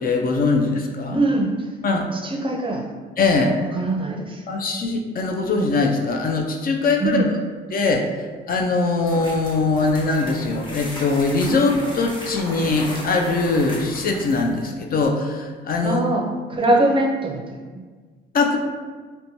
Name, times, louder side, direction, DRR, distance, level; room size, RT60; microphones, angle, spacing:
voice 1, 0.0-1.2 1.8-2.0 3.2-3.5 4.5-7.2 7.7-8.0 8.5-16.0 18.3-18.6, left 3 dB, 45° left, 2 dB, 0.4 m, -21 dB
voice 2, 1.1-1.7 2.1-2.9 3.6-4.4 7.0-7.3 15.8-17.8, right 2 dB, 25° right, 0 dB, 0.5 m, -23 dB
sound 1, 9.0-14.6, equal, 25° left, 0.7 m, -36 dB
2.8 x 2.2 x 2.6 m, 1.4 s
cardioid pair, 90°, 20 cm